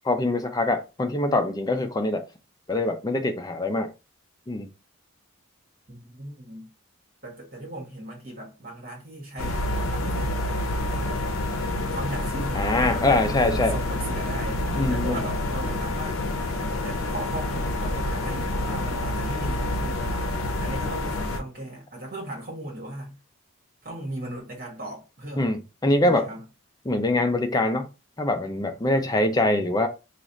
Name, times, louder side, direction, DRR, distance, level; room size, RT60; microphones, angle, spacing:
voice 1, 0.0-2.2 2.7-3.9 4.5-4.7 12.6-13.7 14.7-15.2 25.4-26.3 26.9-27.9 28.2-29.9, left 2 dB, 15° left, 0.4 m, -24 dB
voice 2, 5.9-6.7 7.2-11.2 11.9-16.2 16.7-23.2 23.8-25.6 26.0-26.4, right 1 dB, 40° right, 1.5 m, -37 dB
sound 1, 9.4-21.4, left 1 dB, 65° left, 0.6 m, -28 dB
sound 2, 11.6-21.4, equal, 20° right, 1.3 m, -47 dB
3.1 x 2.4 x 4.0 m
head